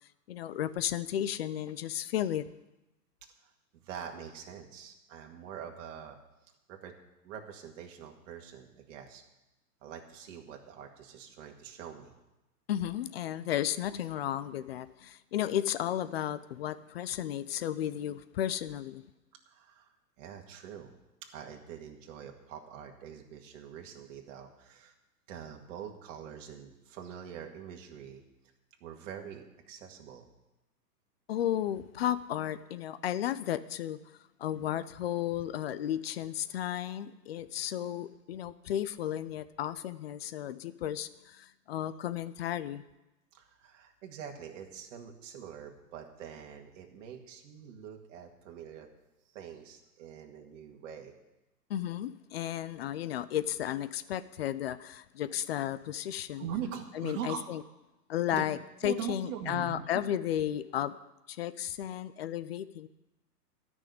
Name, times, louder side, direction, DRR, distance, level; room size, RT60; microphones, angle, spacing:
voice 1, 0.3-2.5 12.7-19.0 31.3-34.0 34.4-42.8 51.7-56.4 56.9-57.6 58.1-58.6 58.8-61.0 61.3-62.9, left 11 dB, 40° left, 15 dB, 0.5 m, -33 dB
voice 2, 3.4-6.2 6.7-6.9 7.2-9.2 9.8-12.1 19.5-20.9 21.3-24.9 25.3-28.2 28.8-30.3 43.3-48.9 49.2-51.1 56.4-57.5 58.3-58.4 58.8-59.8, right 8 dB, 50° right, 2 dB, 2.1 m, -44 dB
13.0 x 6.3 x 9.4 m, 0.97 s
hypercardioid pair, 135°, 50 cm